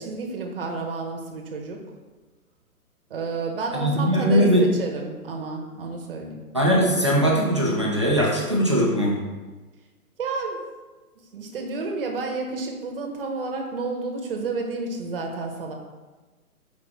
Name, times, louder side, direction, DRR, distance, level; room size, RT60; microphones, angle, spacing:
voice 1, 0.0-1.8 3.1-6.4 10.2-10.6 11.3-15.7, right 4 dB, 40° right, 1 dB, 1.0 m, -30 dB
voice 2, 3.8-4.6 6.5-9.2, equal, 20° right, -3 dB, 0.4 m, -20 dB
5.6 x 4.8 x 3.6 m, 1.3 s
hypercardioid pair, 160°, 45 cm